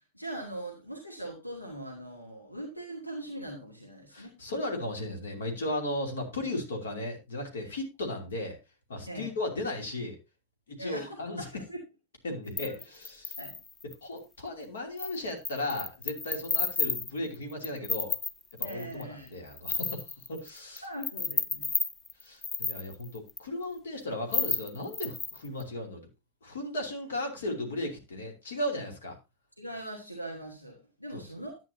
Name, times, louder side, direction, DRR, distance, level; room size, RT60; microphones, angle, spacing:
voice 1, 0.1-4.3 9.1-9.3 10.8-11.8 12.4-12.6 13.4-13.6 18.6-19.3 20.8-21.7 29.6-31.6, right 1 dB, 90° left, 0 dB, 1.9 m, -41 dB
voice 2, 4.1-8.6 8.9-10.2 10.7-11.5 12.2-13.4 14.0-18.1 18.6-20.9 22.2-26.1 26.4-29.2 31.1-31.2, left 1 dB, 65° left, 3 dB, 2.8 m, -36 dB
sound 1, 12.6-13.9 15.0-15.2 15.4-19.0 19.3-20.8 21.0-23.4 24.3-25.6, left 4 dB, 20° left, 0.7 m, -32 dB
11.5 x 8.9 x 2.7 m, 0.25 s
figure-of-eight pair, 90°, 0 cm